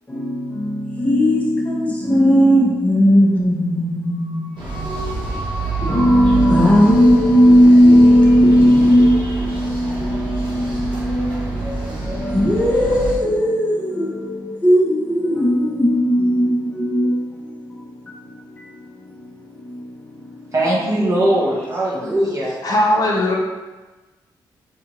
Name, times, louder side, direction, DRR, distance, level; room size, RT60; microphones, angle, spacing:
voice 1, 0.1-20.5 22.0-22.1, equal, 15° left, -4 dB, 0.8 m, -17 dB
sound 1, 4.6-13.2, right 3 dB, 80° right, 1.0 m, -27 dB
voice 2, 20.5-22.6, right 1 dB, 40° right, -6 dB, 1.1 m, -20 dB
voice 3, 22.6-23.4, left 1 dB, 50° left, -2 dB, 0.7 m, -18 dB
4.1 x 2.8 x 2.9 m, 1.2 s
cardioid pair, 105°, 8 cm